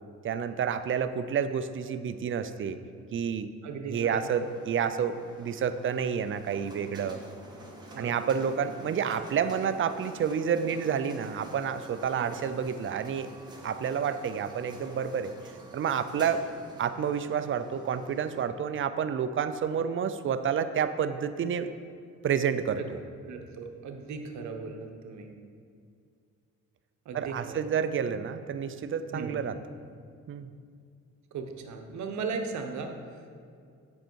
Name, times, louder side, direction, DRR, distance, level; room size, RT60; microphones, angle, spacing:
voice 1, 0.2-2.8 3.1-3.5 3.9-7.2 8.0-13.3 13.6-15.3 15.7-16.4 16.8-21.7 22.2-23.0 27.1-29.6 30.3-30.5, right 7 dB, 45° right, 11 dB, 0.5 m, -29 dB
voice 2, 3.6-4.2 7.9-8.1 12.2-12.3 22.8-22.9 23.3-25.3 27.0-27.5 29.1-29.4 31.3-32.9, right 5 dB, 70° right, 4 dB, 0.9 m, -37 dB
sound 1, 4.0-18.4, right 1 dB, 15° right, 1.4 m, -48 dB
7.7 x 5.6 x 4.6 m, 2.3 s
cardioid pair, 90°, 30 cm